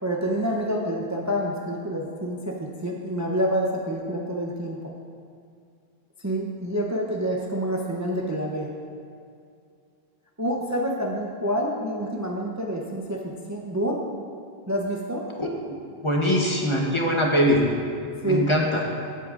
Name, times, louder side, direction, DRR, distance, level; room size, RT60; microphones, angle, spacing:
voice 1, 0.0-4.9 6.2-8.7 10.4-14.0 14.7-15.3 18.2-18.4, equal, 20° right, -1 dB, 0.6 m, -27 dB
voice 2, 16.0-17.6 18.3-18.8, equal, 30° left, -1 dB, 0.9 m, -22 dB
15.5 x 8.3 x 2.5 m, 2.3 s
omnidirectional pair, 1.1 m